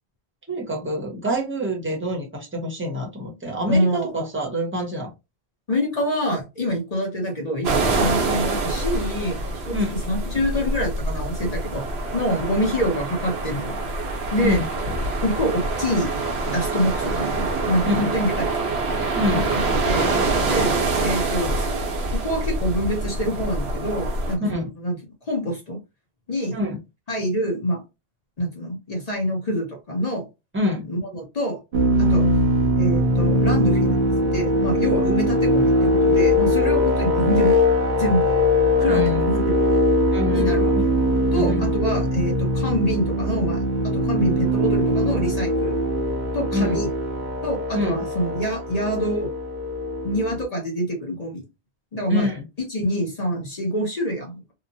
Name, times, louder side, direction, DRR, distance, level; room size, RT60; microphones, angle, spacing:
voice 1, 0.5-5.1 9.7-10.0 14.4-14.6 17.8-18.1 19.2-19.5 24.4-24.7 26.5-26.8 30.5-30.8 38.9-39.2 39.6-39.7 40.1-40.8 41.4-41.7 46.5-46.8 47.7-48.0 52.1-52.4, left 1 dB, 15° right, 0 dB, 0.7 m, -26 dB
voice 2, 3.7-4.1 5.7-7.7 7.9-9.7 10.1-11.9 12.1-14.6 15.2-16.1 16.5-18.5 19.3-20.1 20.5-20.7 21.0-21.7 22.1-25.0 25.3-25.8 26.3-26.6 27.1-27.8 28.4-30.2 30.8-31.6 32.0-32.3 32.8-34.0 34.3-37.6 38.0-38.3 38.8-39.5 40.3-41.0 41.3-45.8 46.3-46.9 47.4-49.3 50.0-51.4 51.9-52.3 52.6-54.4, equal, 40° left, 0 dB, 0.8 m, -26 dB
sound 1, 7.6-24.3, right 3 dB, 70° right, 1.0 m, -25 dB
sound 2, 31.7-50.4, equal, 55° right, 0.7 m, -21 dB
2.8 x 2.0 x 2.6 m, 0.25 s
omnidirectional pair, 1.1 m